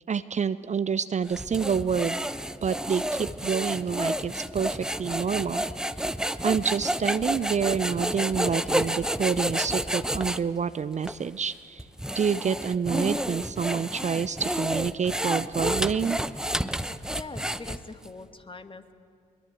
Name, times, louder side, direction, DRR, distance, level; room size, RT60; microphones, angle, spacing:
voice 1, 0.1-2.2 2.6-5.6 6.0-6.1 6.4-11.9 12.1-16.2, right 6 dB, 35° right, 14 dB, 0.6 m, -28 dB
sound 1, 1.3-10.4 11.0-11.2 11.8-18.1, right 1 dB, 5° right, 0.9 m, -30 dB
voice 2, 17.1-18.9, left 3 dB, 25° left, 8 dB, 1.9 m, -43 dB
22.5 x 22.0 x 8.3 m, 2.3 s
hypercardioid pair, 45°, 20 cm